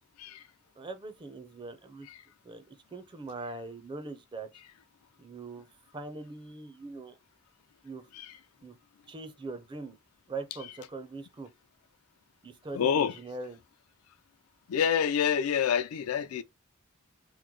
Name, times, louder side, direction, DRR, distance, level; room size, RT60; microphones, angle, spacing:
voice 1, 0.8-2.1 2.4-4.5 5.2-5.6 5.9-7.2 7.8-8.0 8.6-8.7 9.1-10.0 10.3-11.5 12.4-13.6, right 3 dB, 20° right, 0.5 m, -41 dB
voice 2, 12.7-13.1 14.7-16.4, left 8 dB, 80° left, 0.4 m, -27 dB
3.0 x 2.1 x 3.6 m
head